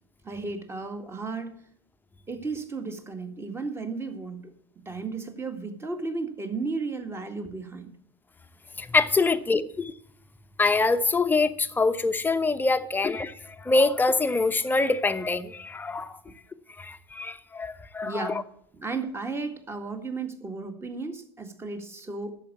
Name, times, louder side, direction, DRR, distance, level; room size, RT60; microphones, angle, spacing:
voice 1, 0.2-1.6 2.3-4.5 4.9-7.9 13.0-13.1 18.0-18.4 18.7-22.4, right 3 dB, 15° right, 1.9 m, -34 dB
voice 2, 8.8-9.9 10.6-16.2 16.8-18.3, left 3 dB, 15° left, 0.9 m, -25 dB
10.5 x 7.3 x 8.3 m
hypercardioid pair, 85°, 14 cm